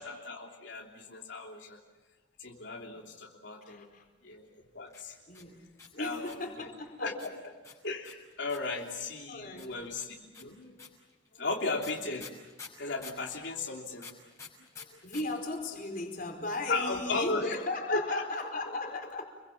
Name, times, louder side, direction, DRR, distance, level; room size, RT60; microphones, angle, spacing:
voice 1, 0.0-1.8 2.4-3.9 4.2-5.2 6.0-6.7 7.0-7.3 7.8-10.8 11.3-12.2 12.8-14.1 14.8-15.0 16.7-17.6 17.9-18.2 18.6-19.0, left 3 dB, 70° left, -1 dB, 3.2 m, -36 dB
voice 2, 3.6-4.1 5.3-5.7 5.9-7.3 9.3-10.3 11.4-11.9 15.0-19.3, left 2 dB, 45° left, 3 dB, 4.7 m, -37 dB
sound 1, 4.9-6.5 7.2-8.8 9.6-13.3 14.0-15.2 15.5-15.6 15.8-16.3, left 5 dB, 15° left, 5.9 m, -48 dB
29.5 x 23.0 x 7.2 m, 1.3 s
head